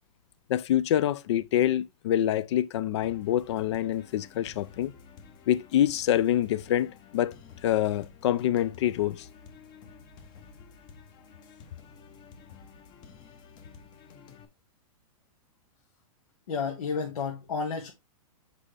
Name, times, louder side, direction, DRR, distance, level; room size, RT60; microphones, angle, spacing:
voice 1, 0.5-4.9 5.5-7.3 7.6-9.3, left 11 dB, 50° left, 0.5 m, -26 dB
sound 1, 3.0-14.4, left 6 dB, 25° left, 0.9 m, -51 dB
voice 2, 16.5-17.9, left 5 dB, 85° left, 1.7 m, -31 dB
6.1 x 5.5 x 3.3 m
supercardioid pair, 165°, 18 cm